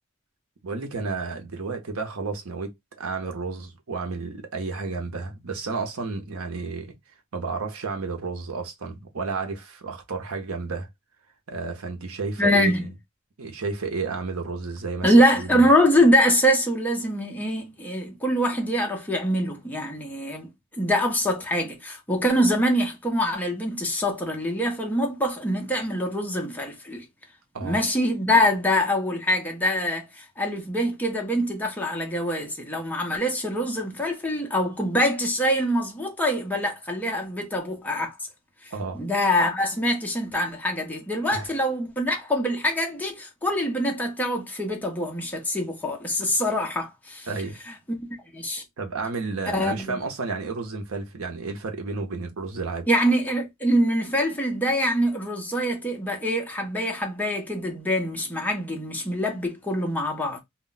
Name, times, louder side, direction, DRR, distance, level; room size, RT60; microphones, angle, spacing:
voice 1, 0.6-6.9 7.3-10.9 11.5-12.9 13.4-15.7 27.5-27.8 38.7-39.0 41.3-41.5 47.3-47.6 48.8-52.9, right 4 dB, 75° right, 0.7 m, -31 dB
voice 2, 12.4-12.9 15.0-20.5 20.8-27.0 27.6-38.2 38.9-47.3 47.9-48.6 49.5-50.0 52.9-60.4, equal, 10° left, 0.6 m, -24 dB
2.2 x 2.0 x 3.8 m
head